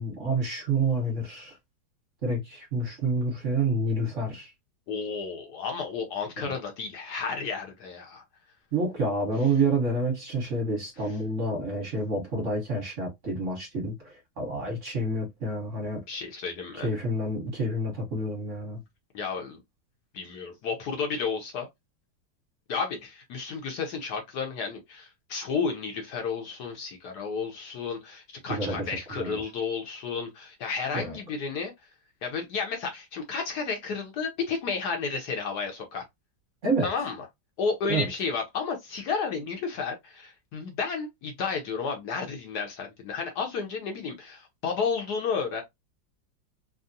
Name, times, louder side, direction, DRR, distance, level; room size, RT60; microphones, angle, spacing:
voice 1, 0.0-1.6 2.2-4.5 6.4-6.5 8.7-16.0 16.7-18.8 28.5-28.8 29.1-29.4 30.9-31.2 36.6-36.9 37.9-38.1, right 2 dB, 45° right, 1.3 m, -28 dB
voice 2, 4.9-8.2 16.1-16.9 19.1-19.6 20.1-21.7 22.7-31.7 32.2-36.0 36.8-37.2 37.6-45.6, left 5 dB, 65° left, 1.1 m, -32 dB
3.6 x 2.0 x 2.6 m
omnidirectional pair, 2.0 m